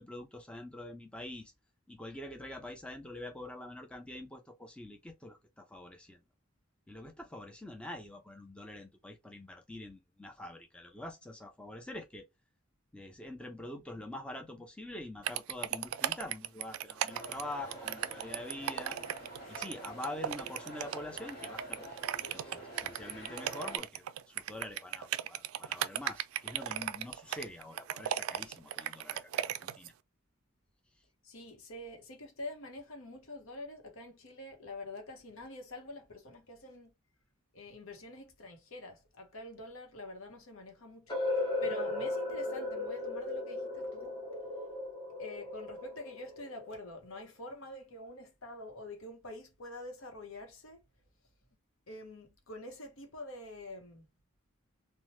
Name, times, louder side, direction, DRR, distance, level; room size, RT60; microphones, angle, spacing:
voice 1, 0.0-1.5 1.9-6.2 6.9-12.2 12.9-19.0 19.5-22.0 22.3-29.9, left 1 dB, 5° left, 0.4 m, -45 dB
sound 1, 15.2-29.9, right 11 dB, 85° right, 0.3 m, -36 dB
sound 2, 17.1-23.8, right 1 dB, 50° left, 1.0 m, -47 dB
voice 2, 31.2-36.9 37.5-41.3 41.6-44.1 45.2-50.8 51.9-54.0, left 1 dB, 75° left, 0.8 m, -46 dB
sound 3, 41.1-47.0, left 2 dB, 20° left, 0.8 m, -36 dB
2.8 x 2.1 x 3.0 m
head